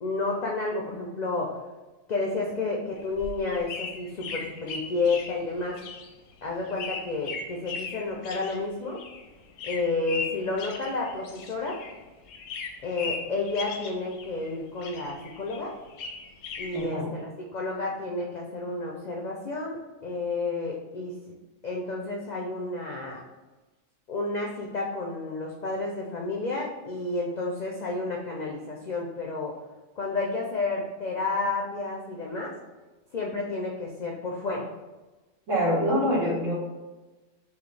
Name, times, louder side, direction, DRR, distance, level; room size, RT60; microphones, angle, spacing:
voice 1, 0.0-1.5 2.1-5.8 6.4-9.0 9.6-11.8 12.8-15.7 16.6-21.2 21.6-23.2 24.1-29.6 30.0-32.5 33.1-34.7, left 3 dB, 60° left, -1 dB, 0.4 m, -31 dB
sound 1, 3.0-12.0 12.3-14.5 14.8-16.8, left 4 dB, 85° left, 0.9 m, -38 dB
voice 2, 16.7-17.1 35.5-36.5, equal, 85° right, -6 dB, 1.5 m, -25 dB
5.7 x 2.1 x 3.3 m, 1.2 s
omnidirectional pair, 1.3 m